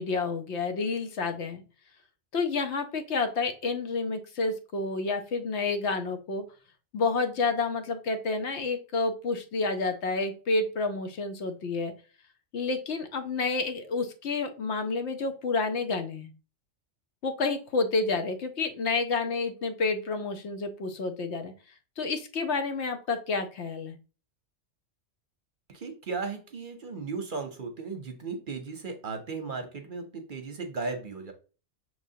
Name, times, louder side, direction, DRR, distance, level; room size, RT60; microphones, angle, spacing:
voice 1, 0.0-1.6 2.3-6.4 6.9-11.9 12.5-16.3 17.2-21.5 22.0-24.0, left 3 dB, 70° left, 6 dB, 1.0 m, -29 dB
voice 2, 25.7-31.3, right 4 dB, 50° right, 6 dB, 0.8 m, -36 dB
6.3 x 3.1 x 2.7 m, 0.35 s
omnidirectional pair, 1.2 m